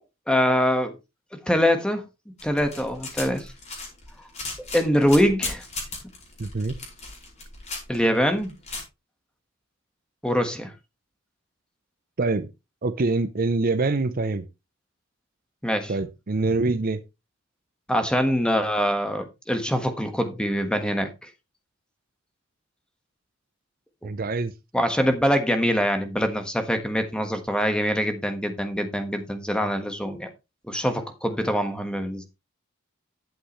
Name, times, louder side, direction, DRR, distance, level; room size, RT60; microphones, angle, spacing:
voice 1, 0.3-0.9 1.4-2.0 2.4-3.5 4.7-5.6 7.9-8.5 10.2-10.7 15.6-15.9 17.9-21.1 24.7-30.3 30.7-32.3, equal, 5° left, 1.4 m, -24 dB
sound 1, 2.4-8.8, left 3 dB, 35° left, 5.0 m, -35 dB
voice 2, 6.4-6.7 12.2-12.5 12.8-14.5 15.9-17.0 24.0-24.5, right 3 dB, 45° right, 0.6 m, -25 dB
11.5 x 7.9 x 3.1 m
head